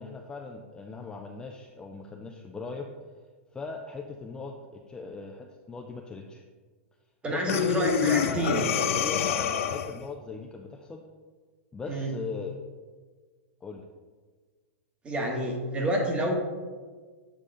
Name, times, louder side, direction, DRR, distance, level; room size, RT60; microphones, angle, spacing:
voice 1, 0.0-2.9 3.5-6.4 7.3-11.0 11.7-12.6 13.6-13.8, left 4 dB, 10° left, 2 dB, 0.4 m, -39 dB
voice 2, 7.2-8.7 11.9-12.1 15.0-16.4, right 1 dB, 15° right, 1 dB, 1.1 m, -28 dB
Breathing, 7.5-10.1, left 8 dB, 75° left, 0.5 m, -27 dB
8.4 x 3.6 x 3.7 m, 1.5 s
supercardioid pair, 145°, 7 cm